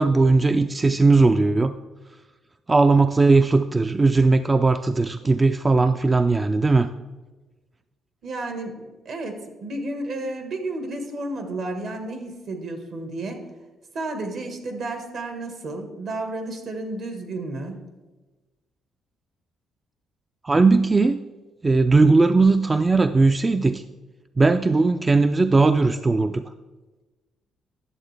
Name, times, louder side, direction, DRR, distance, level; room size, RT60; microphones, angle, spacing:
voice 1, 0.0-1.7 2.7-6.9 20.4-21.2 21.6-23.8 24.4-26.4, right 3 dB, 25° right, 9 dB, 0.3 m, -18 dB
voice 2, 8.2-13.4 13.9-17.7, right 2 dB, 65° right, 5 dB, 1.4 m, -32 dB
11.0 x 7.2 x 3.3 m, 1.2 s
cardioid pair, 90°, 0 cm